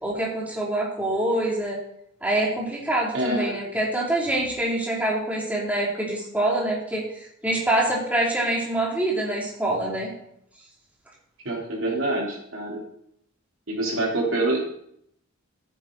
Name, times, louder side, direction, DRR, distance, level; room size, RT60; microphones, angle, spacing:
voice 1, 0.0-1.8 2.2-10.1, right 1 dB, 5° right, -4 dB, 2.9 m, -25 dB
voice 2, 3.1-3.6 11.4-12.8 13.7-14.6, right 2 dB, 65° right, -2 dB, 3.5 m, -26 dB
14.0 x 9.3 x 4.0 m, 0.71 s
head